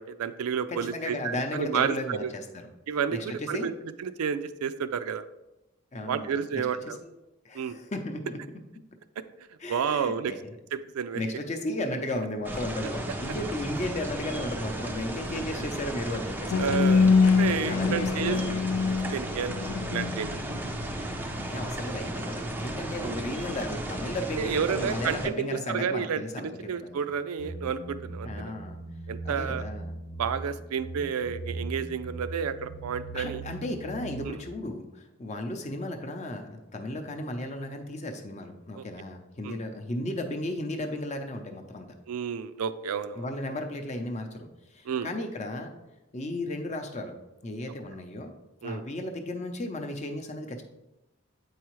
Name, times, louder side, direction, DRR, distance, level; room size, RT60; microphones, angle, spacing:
voice 1, 0.0-2.3 2.9-3.2 3.5-3.7 4.0-5.2 6.1-7.0 7.5-7.8 9.7-10.3 10.7-11.2 16.6-18.5 19.1-19.5 19.9-20.4 23.0-23.2 24.4-28.5 29.1-29.7 30.2-33.4 34.2-34.4 38.8-38.9 39.4-39.6 42.1-43.3 44.9-45.1 48.6-48.8, right 7 dB, 85° right, 12 dB, 0.4 m, -31 dB
voice 2, 0.7-2.7 3.1-3.7 5.9-7.0 7.4-8.4 9.6-10.5 11.1-16.7 17.7-18.6 21.3-27.1 28.2-28.8 29.2-29.9 33.1-41.9 43.2-45.7 46.1-47.1 47.4-48.3 48.6-50.6, left 1 dB, 30° left, 4 dB, 0.6 m, -35 dB
sound 1, 12.4-25.3, right 1 dB, 10° right, 0.4 m, -35 dB
sound 2, 16.5-21.4, left 5 dB, 85° left, 0.3 m, -24 dB
sound 3, 27.4-34.3, right 2 dB, 55° left, 0.8 m, -39 dB
8.0 x 4.7 x 3.1 m, 0.98 s
head